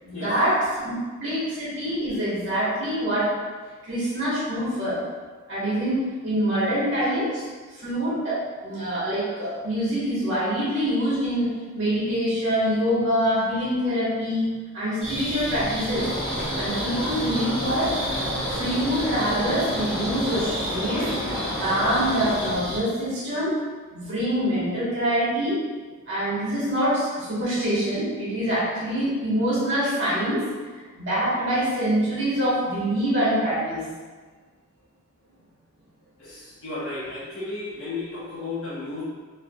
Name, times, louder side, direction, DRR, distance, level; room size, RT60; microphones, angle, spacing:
voice 1, 0.0-3.3 3.8-5.0 5.5-7.5 7.7-11.5 11.7-16.0 16.6-17.9 18.5-21.0 21.6-23.5 23.9-25.5 26.1-30.4 30.9-33.8, equal, 55° right, -10 dB, 1.4 m, -25 dB
sound 1, 15.0-22.8, equal, 25° right, 1.1 m, -32 dB
sound 2, 15.9-22.6, left 1 dB, 45° left, 0.7 m, -31 dB
voice 2, 36.2-39.0, left 3 dB, 85° left, -11 dB, 0.9 m, -33 dB
3.2 x 3.1 x 2.3 m, 1.4 s
head